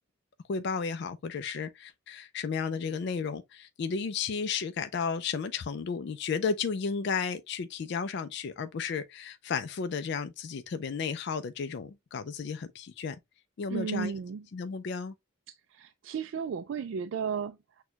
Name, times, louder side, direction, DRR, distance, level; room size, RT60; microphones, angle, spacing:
voice 1, 0.5-13.2 13.6-14.1 14.5-15.1, left 5 dB, 55° left, 0.3 m, -33 dB
voice 2, 13.7-14.5 15.7-17.8, right 6 dB, 65° right, 0.3 m, -34 dB
6.2 x 2.2 x 2.7 m
head